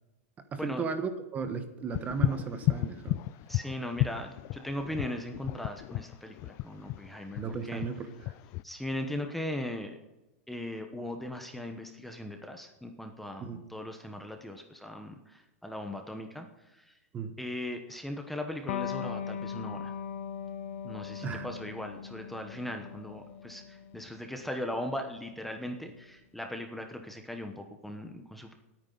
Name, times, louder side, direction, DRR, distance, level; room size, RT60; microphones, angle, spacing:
voice 1, 0.5-3.2 7.4-8.3 13.4-13.6 17.1-17.3 21.2-21.5, right 5 dB, 20° right, 9 dB, 1.1 m, -35 dB
sound 1, 1.9-8.6, left 17 dB, 35° left, 0.4 m, -32 dB
voice 2, 3.5-7.4 7.7-7.8 8.6-9.9 10.5-16.5 16.9-17.0 17.4-19.9 20.8-28.5, left 1 dB, ahead, 4 dB, 1.0 m, -38 dB
Electric guitar, 18.7-25.8, left 7 dB, 60° left, 1.0 m, -40 dB
19.0 x 9.3 x 4.0 m, 1.0 s
supercardioid pair, 150°, 8 cm